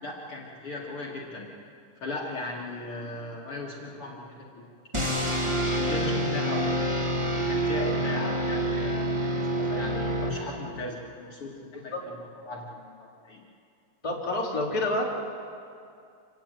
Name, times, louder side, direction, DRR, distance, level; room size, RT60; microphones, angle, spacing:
voice 1, 0.0-1.5 2.0-4.7 5.2-6.8 7.3-13.4, left 2 dB, 45° left, -2 dB, 2.9 m, -38 dB
sound 1, 4.9-10.8, right 1 dB, 25° right, 0.6 m, -27 dB
voice 2, 14.0-15.2, left 1 dB, 10° left, -2 dB, 3.0 m, -28 dB
27.0 x 16.0 x 9.2 m, 2.3 s
omnidirectional pair, 3.5 m